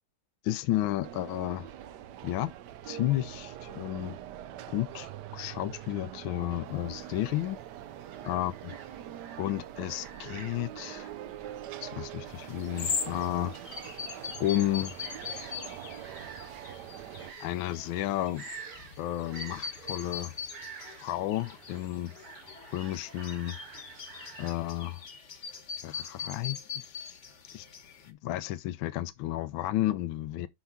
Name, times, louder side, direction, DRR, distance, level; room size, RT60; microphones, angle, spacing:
voice 1, 0.4-1.7 2.2-2.5 2.8-4.1 4.7-7.6 8.2-8.7 9.4-11.1 11.8-13.6 14.4-15.0 17.4-18.5 19.0-20.3 21.0-22.1 22.7-23.6 24.4-25.0 25.8-27.2 27.5-27.7 28.0-30.5, left 14 dB, 75° left, 1.4 m, -32 dB
sound 1, 1.0-17.3, right 11 dB, 70° right, 1.0 m, -44 dB
sound 2, 6.7-24.5, right 6 dB, 85° right, 2.3 m, -50 dB
sound 3, 12.3-28.1, left 6 dB, 40° left, 1.3 m, -41 dB
8.0 x 5.8 x 3.6 m
omnidirectional pair, 2.3 m